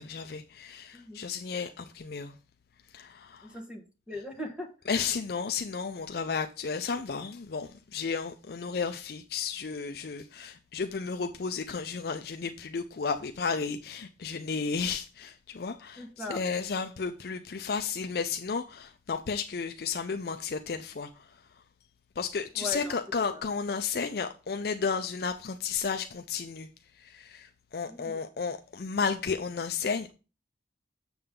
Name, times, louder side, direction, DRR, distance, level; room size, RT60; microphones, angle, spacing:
voice 1, 0.0-2.3 2.9-3.5 4.9-21.3 22.2-26.7 27.0-30.1, left 5 dB, 55° left, 0.5 m, -33 dB
voice 2, 3.4-4.7 16.0-16.4 22.5-22.9 23.3-23.4 27.8-28.2, left 2 dB, 5° right, 1.3 m, -39 dB
7.1 x 6.7 x 3.7 m
head